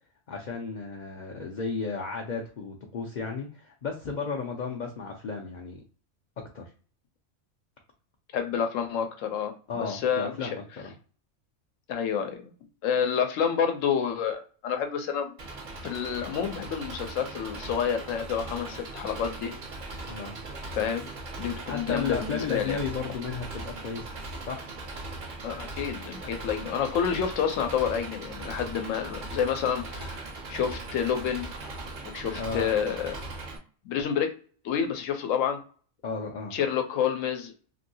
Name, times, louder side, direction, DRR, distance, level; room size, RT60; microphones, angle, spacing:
voice 1, 0.3-5.8 6.5-6.6 9.7-10.9 20.0-20.4 21.7-24.1 24.5-24.7 32.4-32.7 36.0-36.6, left 5 dB, 60° left, 1 dB, 0.5 m, -34 dB
voice 2, 8.3-10.5 11.9-12.5 12.8-15.3 15.8-19.6 20.7-21.1 21.4-22.8 25.4-31.5 32.0-33.2 33.9-34.3 34.6-35.6 36.5-37.5, left 7 dB, 85° left, 6 dB, 1.0 m, -29 dB
Engine, 15.4-33.6, right 2 dB, 50° right, 0.7 m, -39 dB
3.0 x 2.6 x 2.6 m, 0.41 s
omnidirectional pair, 1.3 m